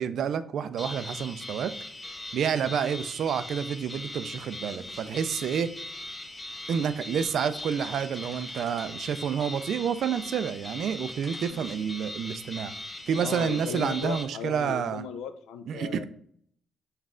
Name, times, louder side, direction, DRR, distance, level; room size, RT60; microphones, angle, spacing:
voice 1, 0.0-1.7 2.3-5.7 6.7-12.7 13.1-15.0 15.7-16.0, right 7 dB, 70° right, 12 dB, 0.3 m, -29 dB
sound 1, 0.8-14.2, left 1 dB, 15° left, 0.5 m, -40 dB
sound 2, 7.6-9.1 9.8-10.6 11.2-11.5, right 1 dB, 15° right, 0.8 m, -54 dB
voice 2, 13.1-16.0, left 7 dB, 90° left, 10 dB, 0.4 m, -36 dB
5.4 x 2.4 x 3.6 m, 0.65 s
cardioid pair, 90°, 0 cm